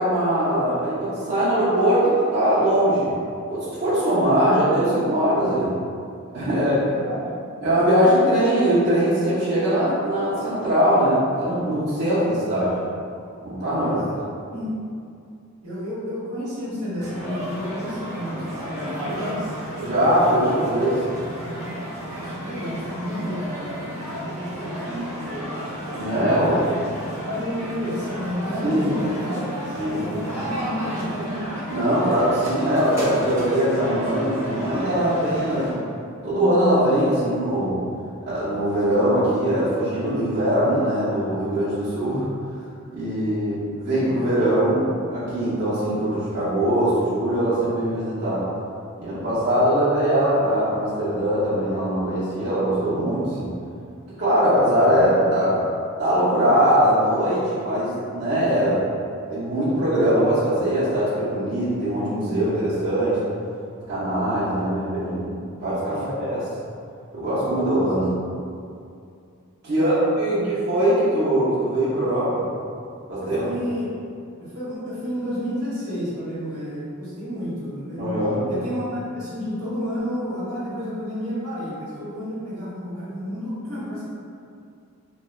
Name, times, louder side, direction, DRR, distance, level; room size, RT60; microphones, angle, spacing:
voice 1, 0.0-3.2 3.5-5.8 6.3-6.9 7.6-12.7 13.4-14.0 19.8-21.0 25.9-26.6 28.6-28.8 29.8-30.0 31.7-35.7 36.2-37.8 38.3-42.2 42.9-44.8 45.1-48.4 49.0-53.5 54.2-55.6 56.0-58.8 59.3-63.2 63.9-66.4 67.1-68.1 69.6-72.4 73.1-73.4 78.0-78.4, right 1 dB, 50° right, -13 dB, 0.6 m, -21 dB
voice 2, 6.8-7.3 13.7-14.2 14.5-14.7 15.6-19.5 20.2-20.5 21.2-21.7 22.0-25.4 26.1-26.7 27.2-31.4 65.9-66.1 67.9-68.1 69.7-70.0 70.3-70.7 73.2-73.9 74.4-78.2 78.5-84.0, equal, 75° right, -9 dB, 1.1 m, -31 dB
sound 1, 17.0-35.7, equal, 10° right, 0.7 m, -33 dB
3.0 x 2.2 x 2.2 m, 2.4 s
head